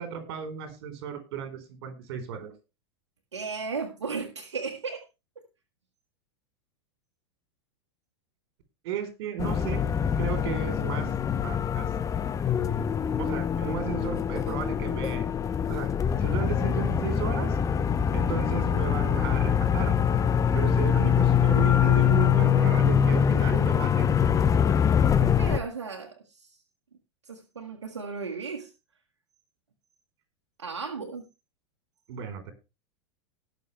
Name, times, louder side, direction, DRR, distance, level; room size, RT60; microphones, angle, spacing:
voice 1, 0.0-2.5 8.8-9.9 10.2-11.1 11.4-11.9 13.2-15.3 15.7-15.9 16.2-17.6 18.1-20.0 20.5-24.1 32.1-32.5, right 8 dB, 60° right, 7 dB, 4.1 m, -34 dB
voice 2, 3.3-5.0 11.3-11.4 25.0-26.6 27.2-28.7 30.6-31.3, right 5 dB, 85° right, 0 dB, 1.8 m, -35 dB
sound 1, 9.4-25.6, left 8 dB, 20° left, 0.9 m, -24 dB
19.0 x 6.7 x 3.3 m, 0.27 s
hypercardioid pair, 95°, 15 cm